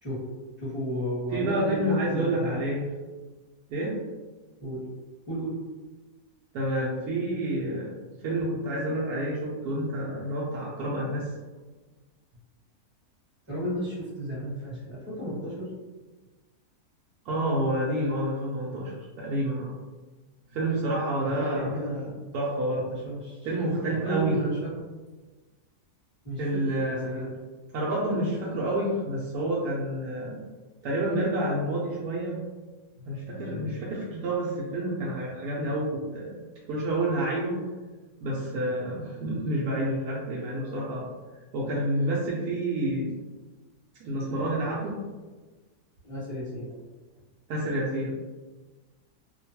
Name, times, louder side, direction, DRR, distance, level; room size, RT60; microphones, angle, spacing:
voice 1, 0.6-2.6 4.6-4.8 5.3-5.6 13.5-15.7 21.2-22.2 22.9-23.4 24.0-24.7 26.2-27.3 46.0-46.7, equal, 10° right, -8 dB, 1.0 m, -33 dB
voice 2, 1.3-2.9 3.7-4.0 6.5-7.9 8.2-11.3 17.2-19.8 20.5-21.8 22.3-22.9 23.4-24.4 26.4-27.3 27.7-30.5 30.8-32.4 33.0-36.4 36.7-37.7 38.2-41.1 41.5-43.2 44.0-45.0 47.5-48.1, right 1 dB, 75° right, -5 dB, 1.0 m, -29 dB
2.9 x 2.1 x 2.8 m, 1.3 s
omnidirectional pair, 1.7 m